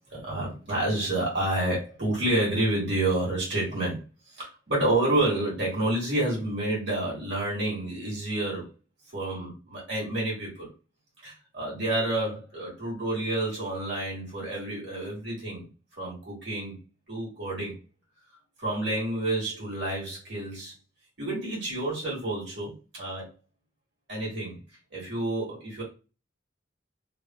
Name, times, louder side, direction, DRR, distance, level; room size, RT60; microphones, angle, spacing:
voice 1, 0.1-4.0 4.3-8.7 9.1-10.7 11.2-15.7 16.0-16.8 17.1-17.8 18.6-20.7 21.2-23.3 24.1-24.6 24.9-25.8, right 1 dB, 60° right, -5 dB, 1.6 m, -29 dB
3.4 x 2.4 x 2.2 m, 0.32 s
head